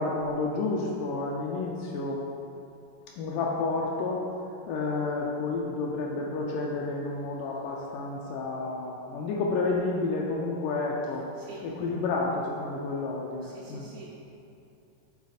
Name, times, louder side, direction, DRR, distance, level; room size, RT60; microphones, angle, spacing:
voice 1, 0.0-2.3 3.2-4.2 4.7-11.2 11.6-13.9, left 3 dB, 85° left, -2 dB, 2.1 m, -30 dB
voice 2, 13.4-14.2, right 3 dB, 85° right, -4 dB, 1.4 m, -46 dB
7.2 x 4.1 x 4.0 m, 2.7 s
omnidirectional pair, 3.6 m